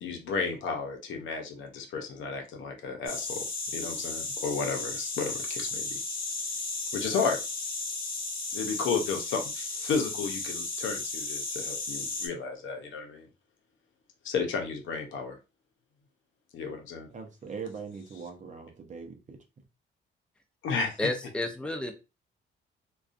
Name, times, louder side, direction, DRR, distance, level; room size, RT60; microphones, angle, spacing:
voice 1, 0.0-3.4 3.7-5.8 6.9-7.4 8.5-13.3 14.2-15.4 16.5-17.1 20.6-21.1, left 5 dB, 75° left, 4 dB, 0.7 m, -33 dB
sound 1, 3.1-12.3, left 3 dB, 50° left, 1.2 m, -34 dB
voice 2, 17.1-19.4, right 5 dB, 40° right, 3 dB, 0.7 m, -41 dB
voice 3, 21.0-21.9, left 1 dB, 5° left, 5 dB, 0.5 m, -31 dB
2.4 x 2.3 x 2.4 m, 0.28 s
cardioid pair, 90°, 20 cm